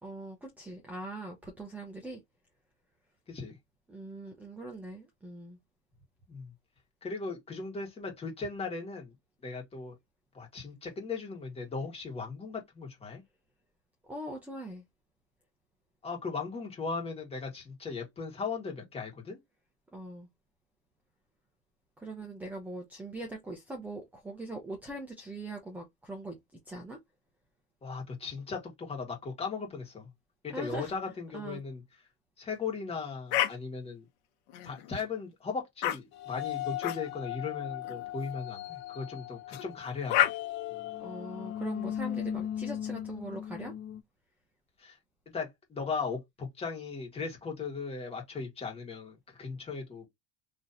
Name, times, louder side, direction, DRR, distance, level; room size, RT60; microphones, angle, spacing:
voice 1, 0.0-2.2 3.9-5.6 14.1-14.8 19.9-20.3 22.0-26.4 26.7-27.0 30.5-30.9 31.3-31.6 41.0-43.7, right 2 dB, 5° right, 0.7 m, -41 dB
voice 2, 7.0-9.1 9.4-9.9 10.3-13.2 16.0-19.4 27.8-30.1 30.4-31.8 32.4-34.0 34.6-40.3 44.8-45.0 45.3-50.1, left 4 dB, 20° left, 1.6 m, -37 dB
sound 1, 33.3-33.5 34.5-35.0 35.8-36.0 36.8-37.0 37.8-38.1 39.5-39.6 40.1-40.3, left 12 dB, 60° left, 1.1 m, -28 dB
sound 2, 36.1-44.0, left 11 dB, 35° left, 0.5 m, -38 dB
4.1 x 3.0 x 2.6 m
cardioid pair, 150°, 32 cm